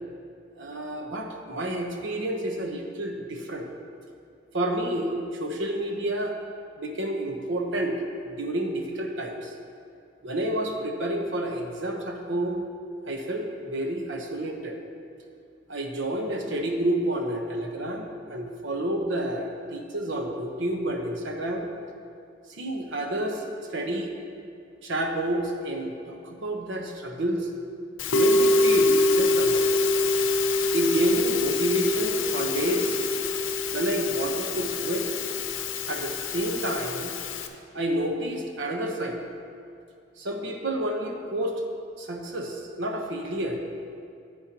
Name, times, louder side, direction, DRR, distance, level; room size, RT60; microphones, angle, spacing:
voice 1, 0.6-3.7 4.5-6.3 6.8-7.9 8.3-9.5 10.2-12.6 13.1-14.8 15.7-21.7 22.5-23.4 23.7-24.1 24.8-27.5 28.1-29.7 30.7-33.0 33.7-35.1 35.9-37.1 37.7-39.2 40.2-41.6 42.0-43.6, right 1 dB, 75° right, 3 dB, 1.0 m, -29 dB
Musical instrument, 28.0-37.5, left 2 dB, 90° left, 0.6 m, -25 dB
11.0 x 8.8 x 2.9 m, 2.4 s
head